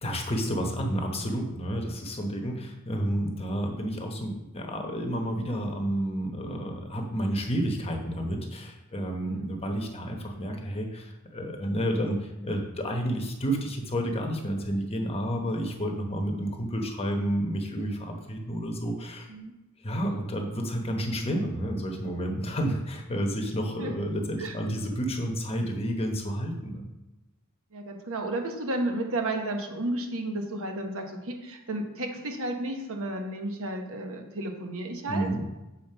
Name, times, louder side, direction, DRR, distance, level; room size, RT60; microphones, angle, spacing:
voice 1, 0.0-19.3 19.8-26.9 35.1-35.4, equal, 25° left, 2 dB, 1.0 m, -30 dB
voice 2, 9.2-9.5 19.3-19.5 23.8-24.0 24.4-24.6 27.7-35.3, right 2 dB, 65° right, 3 dB, 1.1 m, -32 dB
7.5 x 4.2 x 5.6 m, 1.0 s
head